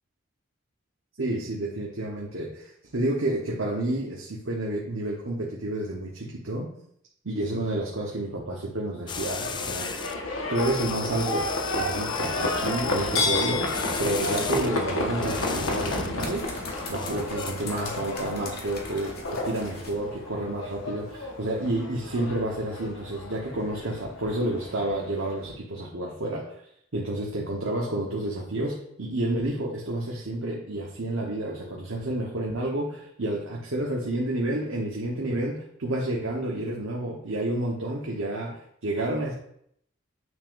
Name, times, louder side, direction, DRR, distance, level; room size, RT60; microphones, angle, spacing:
voice 1, 1.2-6.7 7.2-9.9 10.5-11.5 11.7-16.5 16.9-26.5 26.9-39.3, right 1 dB, 85° right, -2 dB, 1.2 m, -30 dB
Livestock farm animals working animals, 9.1-25.5, left 2 dB, 85° left, 1.4 m, -31 dB
sound 1, 9.1-10.1 10.5-14.7 15.2-16.3 16.8-17.5, left 6 dB, 25° left, 0.4 m, -36 dB
sound 2, 13.9-21.7, left 3 dB, 50° left, 1.5 m, -44 dB
9.4 x 6.1 x 2.6 m, 0.69 s
head